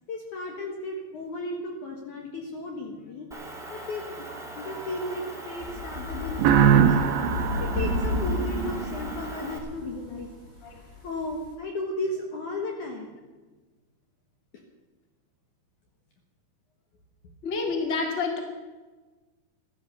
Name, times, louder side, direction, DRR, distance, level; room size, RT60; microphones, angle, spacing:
voice 1, 0.1-4.3 4.6-7.0 7.6-10.3 11.0-13.1, left 2 dB, 60° left, 1 dB, 2.4 m, -35 dB
Motor vehicle (road) / Engine, 3.3-9.6, right 1 dB, ahead, 1.4 m, -40 dB
sound 1, 5.6-11.5, left 1 dB, 80° left, 9.4 m, -32 dB
sound 2, 6.4-9.1, right 8 dB, 75° right, 2.5 m, -22 dB
voice 2, 17.4-18.4, left 4 dB, 25° left, 2 dB, 1.8 m, -28 dB
15.0 x 12.5 x 6.7 m, 1.3 s
omnidirectional pair, 4.9 m